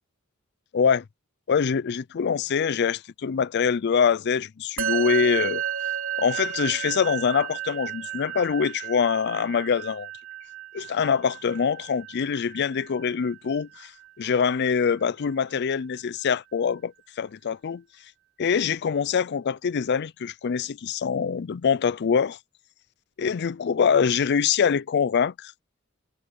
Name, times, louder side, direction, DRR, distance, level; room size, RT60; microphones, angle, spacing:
voice 1, 0.7-1.0 1.5-5.6 6.2-10.1 10.7-13.9 14.2-17.8 18.4-22.4 23.2-25.5, left 6 dB, 55° left, 0.4 m, -24 dB
Musical instrument, 4.8-14.3, right 10 dB, 80° right, 3.3 m, -33 dB
head